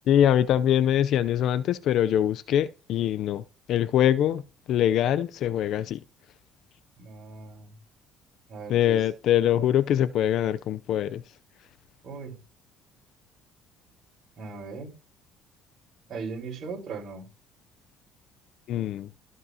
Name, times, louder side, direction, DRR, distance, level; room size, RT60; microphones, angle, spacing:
voice 1, 0.1-3.4 3.7-4.4 4.7-6.0 8.7-11.2 18.7-19.1, left 10 dB, 65° left, 0.5 m, -23 dB
voice 2, 7.0-7.8 8.5-9.0 12.0-12.4 14.4-14.9 16.1-17.3, right 4 dB, 50° right, 4.4 m, -38 dB
14.5 x 5.3 x 2.8 m
supercardioid pair, 80°, 0 cm